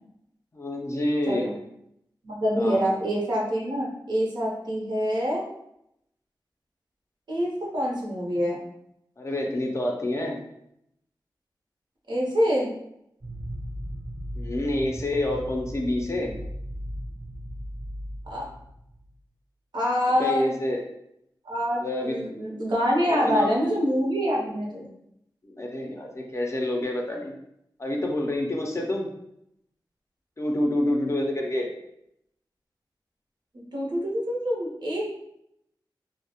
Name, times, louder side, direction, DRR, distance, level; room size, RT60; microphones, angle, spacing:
voice 1, 0.5-1.5 2.6-2.8 9.2-10.4 14.3-16.4 20.2-20.8 21.8-22.2 23.0-23.6 25.4-27.3 27.8-29.1 30.4-31.7, left 1 dB, 35° left, 1 dB, 0.4 m, -27 dB
voice 2, 2.2-5.4 7.3-8.6 12.1-12.7 18.3-18.4 19.7-20.4 21.4-24.9 33.7-35.0, equal, 65° right, -4 dB, 0.7 m, -26 dB
sound 1, 13.2-19.2, equal, 30° right, 0.5 m, -37 dB
2.3 x 2.0 x 2.8 m, 0.78 s
wide cardioid pair, 80°, 8 cm